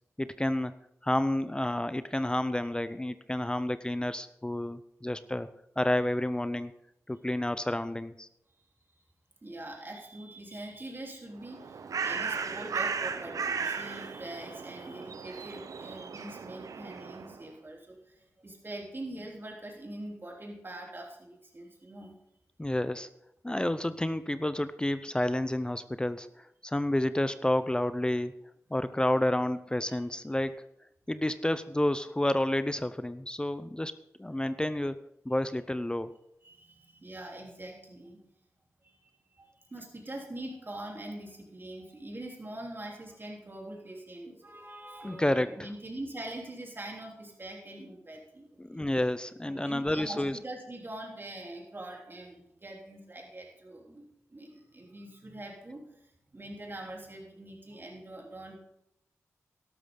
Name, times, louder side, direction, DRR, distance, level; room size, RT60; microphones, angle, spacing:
voice 1, 0.2-0.7 1.0-5.5 5.8-6.7 7.1-8.3 22.6-23.1 23.4-28.4 28.7-30.6 31.1-33.9 34.2-36.1 45.0-45.5 48.6-50.4, left 1 dB, 15° left, 13 dB, 0.6 m, -30 dB
voice 2, 9.4-22.2 29.9-30.0 36.4-38.2 38.8-38.9 39.4-48.9 49.5-54.0 54.3-56.0 56.3-58.6, right 1 dB, 40° right, -1 dB, 3.6 m, -43 dB
Bird, 11.4-17.4, right 5 dB, 75° right, 0.7 m, -36 dB
12.5 x 12.0 x 3.9 m, 0.81 s
cardioid pair, 45°, 6 cm